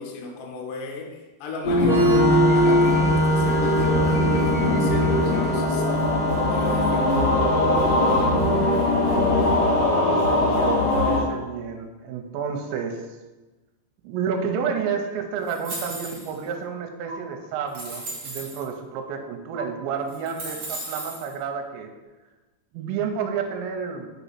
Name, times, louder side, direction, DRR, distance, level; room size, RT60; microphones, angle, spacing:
voice 1, 0.0-5.9 6.5-7.2, left 3 dB, 85° left, 0 dB, 1.9 m, -35 dB
sound 1, 1.6-11.2, left 1 dB, 70° left, 1.4 m, -21 dB
Organ, 1.8-9.3, right 1 dB, 40° left, 1.5 m, -26 dB
voice 2, 9.9-13.0 14.0-21.9 22.7-24.1, right 6 dB, 85° right, 4 dB, 2.9 m, -30 dB
sound 2, 15.5-16.4 17.1-17.2 17.7-18.6 19.6-19.7 20.1-21.3, right 2 dB, 70° right, 1.5 m, -35 dB
6.1 x 4.1 x 5.5 m, 1.2 s
omnidirectional pair, 5.3 m